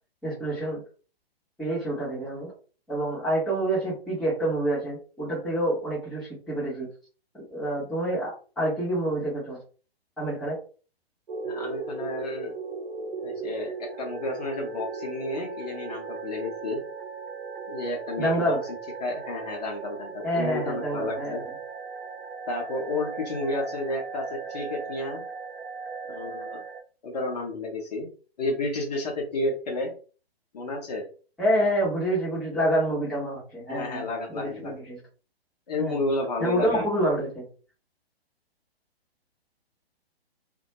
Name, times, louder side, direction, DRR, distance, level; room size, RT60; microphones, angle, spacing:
voice 1, 0.2-0.8 1.6-2.5 2.9-6.9 7.3-9.6 10.2-10.6 18.2-18.6 20.2-21.4 31.4-34.1 34.3-35.0 35.8-36.0 36.4-37.5, right 1 dB, ahead, -10 dB, 0.7 m, -27 dB
space music ambient, 11.3-26.8, right 4 dB, 60° right, 0.6 m, -37 dB
voice 2, 11.5-12.6 13.2-16.8 17.7-18.6 19.0-21.4 22.5-25.2 26.1-26.6 27.0-28.1 28.4-29.9 30.5-31.1 33.7-34.8 35.7-36.9, left 2 dB, 40° left, 0 dB, 0.8 m, -31 dB
2.2 x 2.1 x 2.7 m, 0.37 s
figure-of-eight pair, 130°, 31 cm